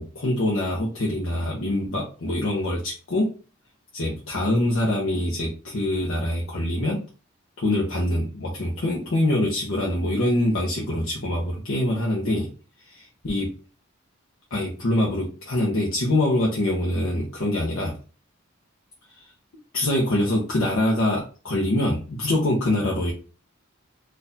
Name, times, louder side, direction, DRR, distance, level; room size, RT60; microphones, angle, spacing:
voice 1, 0.0-3.4 3.9-7.0 7.6-12.5 12.9-13.5 14.5-18.0 19.2-19.3 19.7-23.1, left 1 dB, 70° left, -2 dB, 0.8 m, -24 dB
4.0 x 2.5 x 2.7 m, 0.35 s
head